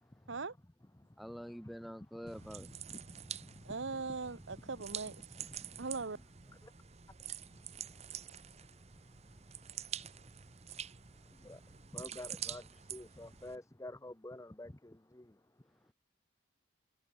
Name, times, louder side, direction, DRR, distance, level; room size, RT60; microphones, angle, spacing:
voice 1, 1.2-2.7, equal, ahead, 2.9 m, -46 dB
sound 1, 2.3-13.6, right 9 dB, 35° right, 0.9 m, -47 dB
voice 2, 3.6-5.5 5.8-6.2, right 4 dB, 70° right, 1.0 m, -40 dB
voice 3, 11.9-12.6 12.9-15.2, left 1 dB, 15° left, 0.8 m, -47 dB
head